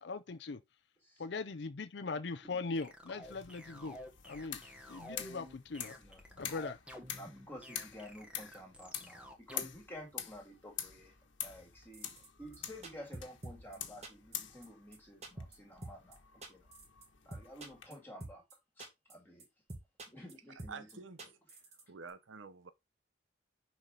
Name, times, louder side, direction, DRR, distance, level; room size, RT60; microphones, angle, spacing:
voice 1, 0.0-0.6 1.2-4.0 4.2-4.6 4.9-6.0 6.4-6.8, left 4 dB, 65° left, 0.5 m, -40 dB
sound 1, 2.4-9.8, left 1 dB, 5° right, 1.2 m, -51 dB
sound 2, 3.2-17.9, left 10 dB, 80° left, 1.3 m, -47 dB
voice 2, 5.9-6.5 7.1-11.2 11.4-16.7 17.3-19.5 20.1-21.3, equal, 10° left, 2.2 m, -52 dB
sound 3, 11.9-12.3 12.5-12.6 12.8-13.8 14.0-14.4 14.6-14.7 14.9-15.0 15.2-15.6 15.8-16.2 16.4-17.1 17.3-17.9 18.2-18.5 18.8-19.1 19.4-19.5 19.7-20.3 20.6-20.9 21.2-21.8 22.1-22.2, right 2 dB, 35° right, 1.6 m, -47 dB
voice 3, 20.7-21.2 21.9-22.7, right 5 dB, 85° right, 0.8 m, -48 dB
6.6 x 4.6 x 3.7 m
head